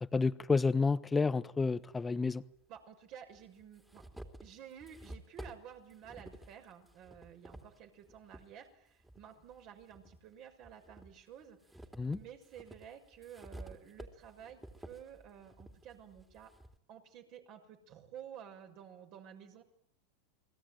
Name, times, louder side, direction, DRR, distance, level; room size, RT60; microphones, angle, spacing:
voice 1, 0.1-2.4 12.0-12.2, left 4 dB, 15° left, 1.1 m, -30 dB
sound 1, 1.6-1.7 2.8-2.9 3.3-8.5 9.0-10.2 10.6-16.8, right 1 dB, 5° right, 3.4 m, -52 dB
voice 2, 2.7-4.0 4.4-11.6 12.1-16.5 16.9-19.6, right 9 dB, 50° right, 6.4 m, -52 dB
30.0 x 21.0 x 9.2 m
hypercardioid pair, 100°, 0 cm